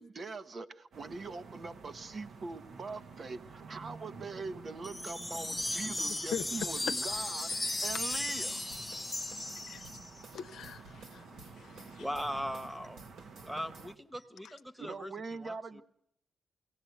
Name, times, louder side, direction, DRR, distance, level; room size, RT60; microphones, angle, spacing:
voice 1, 0.0-8.6 14.8-15.8, right 3 dB, 50° right, 1.0 m, -42 dB
sound 1, 0.9-14.0, right 5 dB, 70° right, 1.2 m, -51 dB
sound 2, 4.8-10.2, left 2 dB, 15° left, 0.8 m, -36 dB
sound 3, 5.6-8.5 8.7-12.7 13.0-13.9, right 3 dB, 90° right, 3.1 m, -54 dB
voice 2, 10.3-12.0, left 8 dB, 85° left, 0.8 m, -41 dB
voice 3, 12.0-13.0 13.4-15.8, equal, 5° right, 1.2 m, -39 dB
22.5 x 17.5 x 8.0 m
cardioid pair, 75°, 0 cm